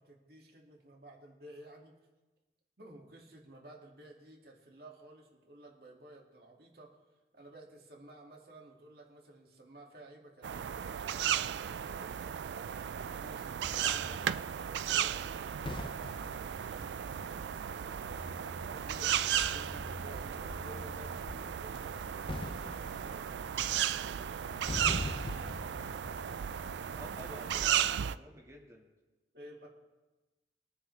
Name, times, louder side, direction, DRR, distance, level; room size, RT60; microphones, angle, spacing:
voice 1, 0.0-1.9 2.8-7.0 7.3-12.3 12.9-24.6 27.3-27.8 29.3-29.7, right 1 dB, 60° right, -1 dB, 2.3 m, -54 dB
sound 1, 10.4-28.2, right 9 dB, 80° right, 0.3 m, -35 dB
sound 2, 13.6-28.1, left 2 dB, 30° left, 0.5 m, -45 dB
voice 2, 27.0-28.8, equal, 20° right, 0 dB, 2.0 m, -51 dB
22.5 x 9.5 x 3.4 m, 1.1 s
head